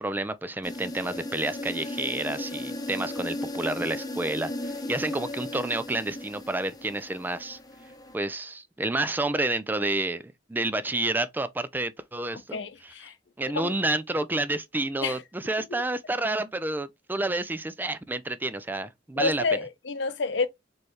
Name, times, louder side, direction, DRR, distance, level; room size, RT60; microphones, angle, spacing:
voice 1, 0.0-7.6 8.1-12.9 13.4-19.4, right 2 dB, 10° right, 0.3 m, -30 dB
sound 1, 0.6-8.1, left 1 dB, 20° left, 0.9 m, -36 dB
voice 2, 12.5-13.1 13.6-13.7 15.0-15.2 15.7-15.8 19.2-20.5, left 4 dB, 70° left, 0.7 m, -29 dB
4.3 x 3.2 x 3.0 m
head